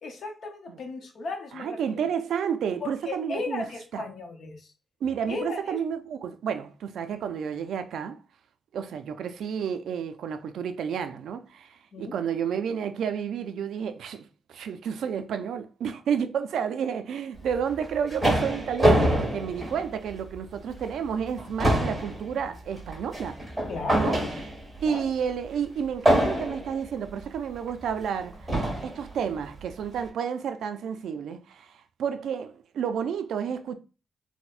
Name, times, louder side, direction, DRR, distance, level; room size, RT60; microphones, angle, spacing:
voice 1, 0.0-2.0 2.8-4.7 5.3-5.8 11.9-12.1 23.7-24.3 24.8-25.0, left 3 dB, 55° left, 0.7 m, -35 dB
voice 2, 1.6-3.7 3.9-4.0 5.0-8.2 8.7-23.4 23.9-24.2 24.8-28.5 28.8-33.8, right 7 dB, 80° right, 0.3 m, -31 dB
sound 1, 17.7-20.3 20.8-21.0 21.3-24.8 26.1-26.8 27.7-27.8 28.5-29.0, equal, 5° right, 1.5 m, -25 dB
4.1 x 2.1 x 2.4 m
wide cardioid pair, 175°, 0 cm